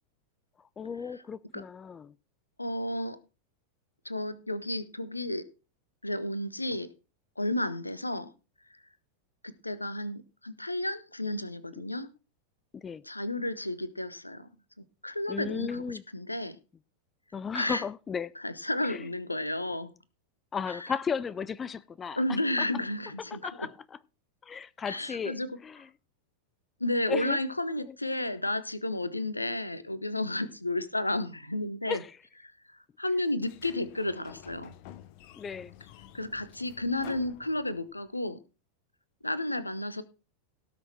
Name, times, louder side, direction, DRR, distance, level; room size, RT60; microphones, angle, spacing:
voice 1, 0.8-2.1 12.7-13.0 15.3-16.0 17.3-18.3 18.9-19.1 20.5-22.2 22.6-22.7 23.4-23.7 24.4-25.3 25.6-25.9 27.1-27.4 27.9-28.0 31.9-32.1 35.4-35.7, left 6 dB, 20° left, 0.4 m, -35 dB
voice 2, 2.6-3.2 4.0-5.4 6.0-6.9 7.4-8.3 8.7-8.8 9.4-12.1 13.0-14.5 15.0-16.6 17.5-17.8 18.4-19.9 20.7-20.9 22.2-23.7 24.9-25.5 26.8-32.0 32.7-34.7 36.1-38.4 39.2-40.0, left 1 dB, 85° left, 1.0 m, -32 dB
Sliding door, 33.4-38.1, left 12 dB, 45° left, 0.9 m, -51 dB
17.0 x 6.3 x 4.4 m
figure-of-eight pair, 90°, 0 cm